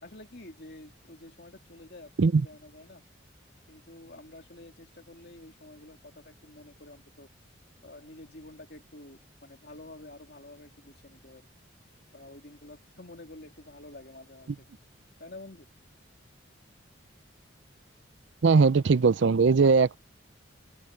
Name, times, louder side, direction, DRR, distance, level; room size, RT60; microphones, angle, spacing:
voice 1, 0.0-3.0 3.7-7.3 7.8-11.5 12.1-14.6 15.2-15.7, left 2 dB, 50° left, 2.7 m, -49 dB
voice 2, 18.4-20.0, right 4 dB, 65° right, 0.5 m, -20 dB
head